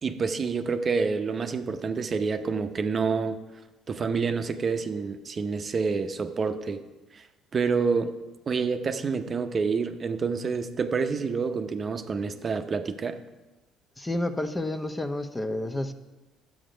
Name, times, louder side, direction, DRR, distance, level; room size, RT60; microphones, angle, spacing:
voice 1, 0.0-3.4 3.9-6.8 7.1-7.2 7.5-8.1 8.5-13.2, right 5 dB, 40° right, 8 dB, 0.8 m, -28 dB
voice 2, 14.0-15.9, left 1 dB, 15° left, 9 dB, 0.9 m, -30 dB
11.0 x 7.9 x 5.1 m, 1.1 s
supercardioid pair, 70°, 0 cm